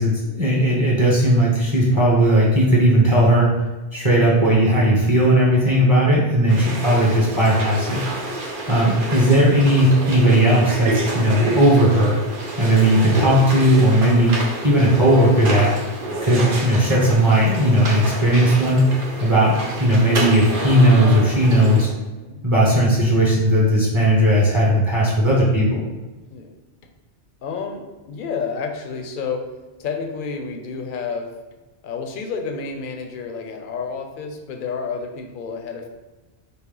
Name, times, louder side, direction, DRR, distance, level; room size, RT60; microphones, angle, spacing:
voice 1, 0.0-3.5 3.9-8.0 8.7-12.2 12.6-14.3 14.6-15.7 16.2-18.9 19.2-19.5 19.8-21.9 22.4-25.8, right 1 dB, 30° right, -6 dB, 0.9 m, -16 dB
sound 1, 6.5-21.9, right 2 dB, 55° right, 0.8 m, -29 dB
voice 2, 6.6-6.9 9.4-9.6 19.5-19.9 22.1-22.4 26.3-26.5 27.4-29.5 29.8-31.3 31.8-35.9, left 5 dB, 60° left, 4 dB, 0.7 m, -30 dB
5.4 x 2.0 x 3.2 m, 1.1 s
omnidirectional pair, 1.1 m